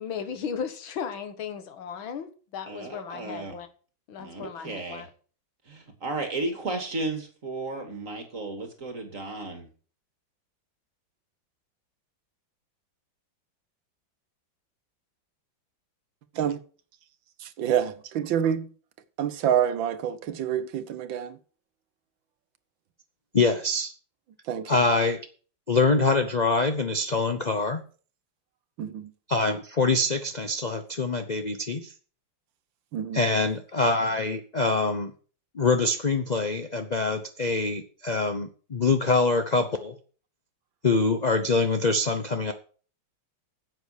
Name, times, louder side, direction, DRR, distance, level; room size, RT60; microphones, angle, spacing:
voice 1, 0.0-3.7 4.1-5.1, left 7 dB, 85° left, 2.1 m, -36 dB
voice 2, 2.6-3.6 4.2-5.1 5.7-9.7, right 2 dB, 40° right, 2.6 m, -34 dB
voice 3, 17.4-18.7 19.2-21.4 24.5-24.8 28.8-29.1 32.9-33.2, right 9 dB, 75° right, 1.7 m, -27 dB
voice 4, 23.3-23.9 24.7-25.2 25.7-27.8 29.3-31.9 33.1-35.1 35.5-39.9 40.8-42.5, left 3 dB, 55° left, 0.4 m, -24 dB
9.5 x 8.1 x 6.5 m
omnidirectional pair, 2.1 m